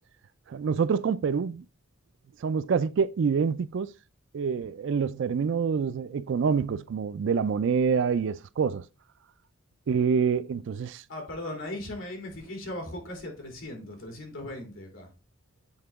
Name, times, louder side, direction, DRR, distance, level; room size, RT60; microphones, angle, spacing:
voice 1, 0.5-1.6 2.4-3.9 4.3-8.8 9.9-11.0, right 6 dB, 60° right, 0.3 m, -26 dB
voice 2, 11.1-15.1, left 1 dB, 65° left, 2.9 m, -38 dB
8.8 x 3.7 x 3.5 m
head